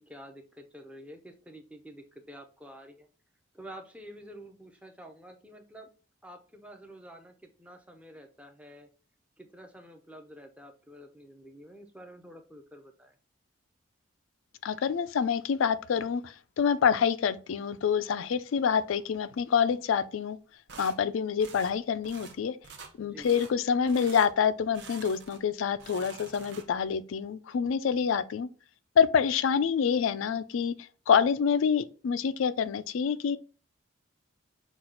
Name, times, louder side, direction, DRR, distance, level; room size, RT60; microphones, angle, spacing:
voice 1, 0.0-3.1 3.5-5.9 6.2-8.9 9.4-13.1 23.0-23.4, equal, 5° right, 0.6 m, -49 dB
voice 2, 14.6-20.4 20.8-22.6 23.0-28.5 29.0-33.4, left 7 dB, 80° left, 0.4 m, -27 dB
sound 1, 20.7-21.0 21.4-21.7 22.0-22.4 22.6-22.9 23.2-23.5 23.9-24.3 24.7-25.4 25.7-26.9, right 5 dB, 55° right, 0.8 m, -47 dB
5.9 x 2.4 x 3.8 m
head